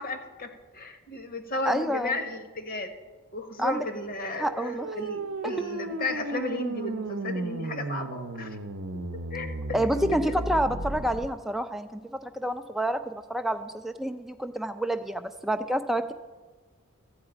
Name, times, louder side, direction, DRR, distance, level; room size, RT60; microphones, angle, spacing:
voice 1, 0.0-2.9 3.3-8.6 9.3-10.3, left 2 dB, 40° left, 7 dB, 1.0 m, -34 dB
voice 2, 1.7-2.2 3.6-3.8 4.4-4.9 5.4-5.5 9.7-16.1, equal, ahead, 7 dB, 0.4 m, -28 dB
sound 1, 4.2-11.3, right 2 dB, 70° right, 0.7 m, -34 dB
13.5 x 4.8 x 8.7 m, 1.4 s
head